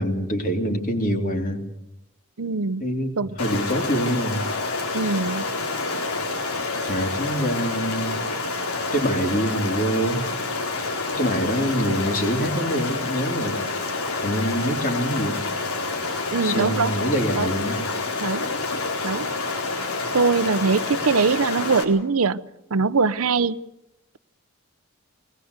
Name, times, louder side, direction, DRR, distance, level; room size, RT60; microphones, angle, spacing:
voice 1, 0.0-1.6 2.8-4.4 5.0-5.1 6.9-8.1 8.9-10.2 11.2-13.6 14.2-15.4 16.4-17.8, equal, 40° left, 3 dB, 3.2 m, -25 dB
voice 2, 2.4-2.8 3.2-3.3 4.9-5.5 16.3-17.0 17.3-17.5 18.2-18.5 19.0-19.3 20.1-22.4 22.7-23.6, right 4 dB, 80° right, 17 dB, 0.8 m, -22 dB
Stream, 3.4-21.8, left 3 dB, 85° left, 4.1 m, -28 dB
22.0 x 20.0 x 8.1 m, 0.88 s
head